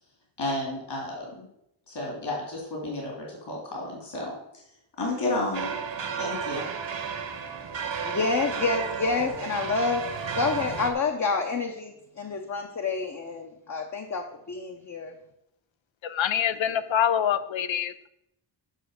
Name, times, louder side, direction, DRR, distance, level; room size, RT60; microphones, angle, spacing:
voice 1, 0.4-1.5 1.9-4.6 5.0-5.7 6.2-6.7, left 2 dB, 60° left, -2 dB, 3.1 m, -32 dB
sound 1, 5.5-10.9, right 6 dB, 65° right, 1.3 m, -33 dB
voice 2, 7.7-10.0 10.4-14.2 14.5-15.1, left 4 dB, 35° left, 3 dB, 0.9 m, -28 dB
voice 3, 16.0-18.1, left 9 dB, 75° left, 14 dB, 0.7 m, -25 dB
7.5 x 6.3 x 6.6 m, 0.81 s
wide cardioid pair, 160°, 46 cm